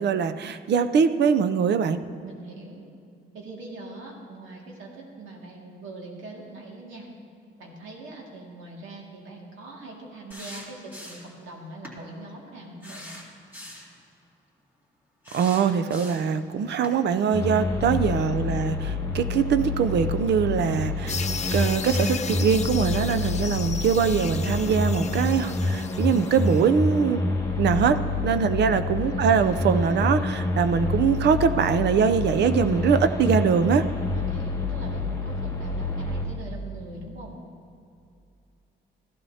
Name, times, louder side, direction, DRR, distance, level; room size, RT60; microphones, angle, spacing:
voice 1, 0.0-2.0 15.3-21.2 21.5-27.2 27.6-33.9, right 6 dB, 60° right, 10 dB, 0.6 m, -23 dB
voice 2, 2.2-2.8 3.3-7.1 7.6-13.1 17.6-18.1 28.5-28.9 34.1-37.4, right 2 dB, 85° right, -1 dB, 2.2 m, -42 dB
sound 1, 10.3-11.4 11.8-12.0 12.8-13.9 15.2-16.4 16.8-17.0, left 1 dB, 10° right, 2.6 m, -42 dB
sound 2, 17.3-36.3, left 3 dB, 20° left, 1.9 m, -28 dB
sound 3, 21.1-26.7, left 6 dB, 35° left, 0.6 m, -36 dB
15.0 x 12.0 x 2.8 m, 2.5 s
cardioid pair, 90°, 20 cm